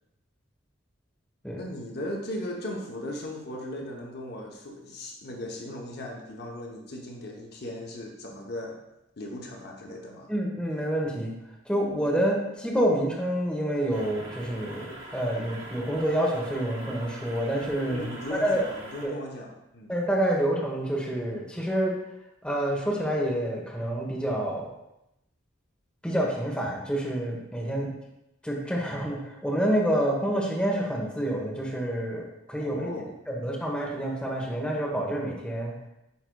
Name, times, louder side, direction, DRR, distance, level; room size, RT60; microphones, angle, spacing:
voice 1, 1.5-8.8 9.2-10.3 17.9-19.9 32.6-33.1, left 1 dB, 50° left, 0 dB, 0.8 m, -37 dB
voice 2, 10.3-11.3 11.6-18.6 19.0-19.2 19.9-21.9 22.4-24.7 26.0-27.9 28.4-32.9 33.3-35.7, right 1 dB, 5° left, -3 dB, 1.0 m, -28 dB
sound 1, 13.9-19.1, right 1 dB, 80° right, 2.3 m, -43 dB
9.3 x 4.8 x 2.3 m, 0.87 s
head